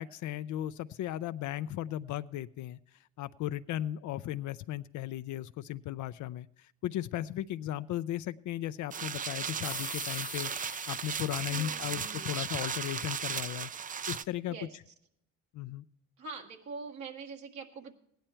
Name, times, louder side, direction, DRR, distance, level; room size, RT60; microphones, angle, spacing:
voice 1, 0.0-2.8 3.2-14.8 15.5-15.8, left 13 dB, 75° left, 12 dB, 0.5 m, -36 dB
sound 1, 8.9-14.2, right 7 dB, 30° right, 0.4 m, -36 dB
sound 2, 9.6-12.9, left 3 dB, 15° left, 0.7 m, -46 dB
voice 2, 11.5-12.4 14.5-14.8 16.2-17.9, right 4 dB, 70° right, 1 dB, 1.9 m, -44 dB
16.0 x 10.5 x 4.4 m, 0.73 s
cardioid pair, 90°, 30 cm